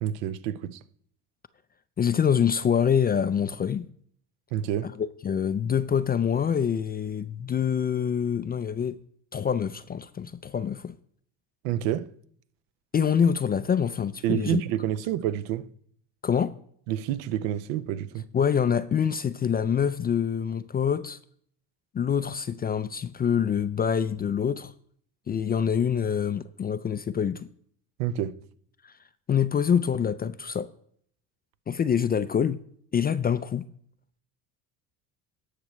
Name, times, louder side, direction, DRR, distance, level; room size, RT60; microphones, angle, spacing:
voice 1, 0.0-0.8 4.5-4.9 11.6-12.1 14.2-15.7 16.9-18.3 28.0-28.4, right 11 dB, 70° right, 0.8 m, -28 dB
voice 2, 2.0-3.9 5.2-9.0 9.3-10.9 12.9-14.6 16.2-16.6 18.3-21.2 21.9-24.7 25.3-27.5 28.8-28.9 29.3-30.7 31.7-32.6 32.9-33.7, left 8 dB, 20° left, 0.4 m, -25 dB
18.5 x 6.6 x 3.1 m
hypercardioid pair, 70°, 46 cm